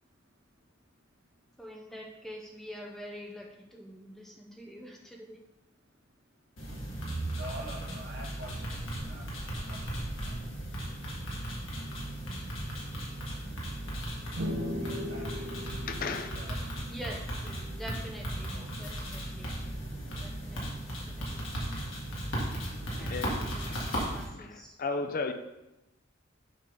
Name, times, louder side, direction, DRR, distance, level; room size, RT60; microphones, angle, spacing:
voice 1, 0.1-0.4 7.3-8.8 9.1-9.2 9.7-10.1 13.7-15.7 16.3-17.2 18.5-18.7, right 1 dB, 55° right, -2 dB, 1.7 m, -48 dB
voice 2, 1.6-5.4 14.7-15.4 16.9-19.5 20.2-21.5 22.8-24.8, equal, ahead, -1 dB, 0.6 m, -46 dB
sound 1, 6.6-24.2, right 1 dB, 85° left, 2.1 m, -36 dB
sound 2, 14.4-17.9, left 1 dB, 85° right, 1.1 m, -38 dB
voice 3, 15.9-16.3 22.5-22.6 23.0-23.9 24.3-24.5 24.8-25.3, left 4 dB, 45° left, 8 dB, 0.5 m, -35 dB
7.4 x 5.4 x 3.7 m, 0.96 s
head